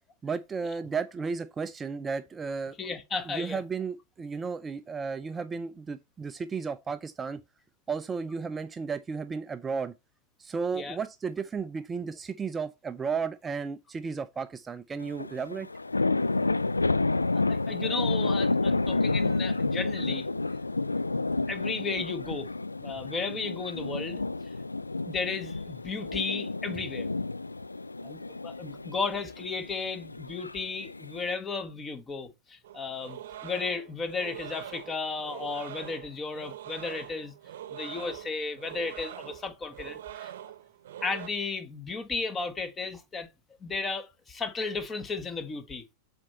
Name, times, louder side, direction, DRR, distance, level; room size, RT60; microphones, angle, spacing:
voice 1, 0.2-2.8 3.3-7.4 7.9-9.9 10.4-15.7, right 5 dB, 15° right, 0.4 m, -33 dB
voice 2, 2.8-3.6 10.7-11.0 17.3-20.3 21.5-22.5 22.8-24.2 25.1-27.1 28.0-37.3 37.7-40.3 41.0-43.3 43.6-45.8, left 4 dB, 20° left, 1.3 m, -34 dB
sound 1, 15.0-31.3, left 3 dB, 80° left, 0.3 m, -30 dB
sound 2, 32.6-41.3, right 11 dB, 55° right, 0.8 m, -43 dB
7.5 x 4.3 x 4.2 m
figure-of-eight pair, 90°, 0 cm